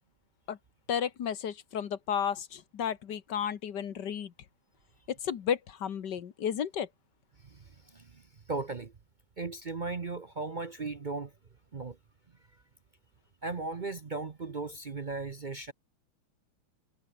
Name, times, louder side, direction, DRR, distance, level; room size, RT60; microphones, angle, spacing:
voice 1, 0.9-4.3 5.1-6.9, left 8 dB, 60° left, 1.8 m, -33 dB
voice 2, 7.4-8.2 8.5-8.9 9.4-11.3 11.7-12.0 13.4-15.7, right 3 dB, 55° right, 0.5 m, -37 dB
omnidirectional pair, 2.3 m